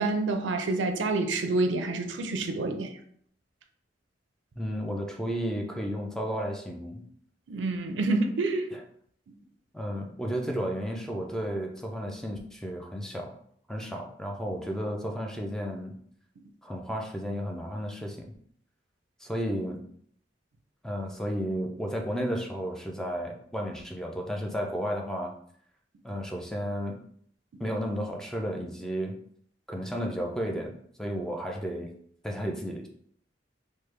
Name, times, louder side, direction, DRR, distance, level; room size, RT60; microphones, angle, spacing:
voice 1, 0.0-3.0 7.5-8.7, right 3 dB, 90° right, 6 dB, 0.4 m, -28 dB
voice 2, 4.6-7.0 8.7-8.8 9.7-13.4 13.7-15.9 16.6-18.3 19.2-19.8 20.8-25.3 26.0-27.0 27.6-29.1 29.7-31.9 32.2-32.9, equal, 5° left, 1 dB, 0.4 m, -33 dB
3.1 x 2.1 x 3.2 m, 0.64 s
head